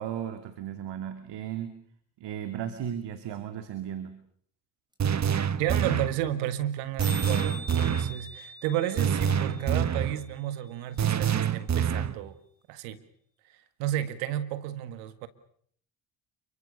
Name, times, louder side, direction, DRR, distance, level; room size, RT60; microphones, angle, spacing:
voice 1, 0.0-1.8 2.2-4.1, right 9 dB, 65° right, 8 dB, 2.5 m, -35 dB
sound 1, 4.9-5.0 5.2-5.3 5.5-5.7 6.0-6.1 6.2-6.5 6.7-6.8 7.0-11.0, equal, 10° right, 7.1 m, -44 dB
sound 2, 5.0-6.2 7.0-8.2 9.0-10.2 11.0-12.2, right 8 dB, 40° right, 1.3 m, -26 dB
voice 2, 5.6-12.4 12.7-13.0 13.8-15.3, right 12 dB, 85° right, 11 dB, 1.9 m, -32 dB
28.0 x 24.0 x 6.7 m, 0.63 s
hypercardioid pair, 60°, 44 cm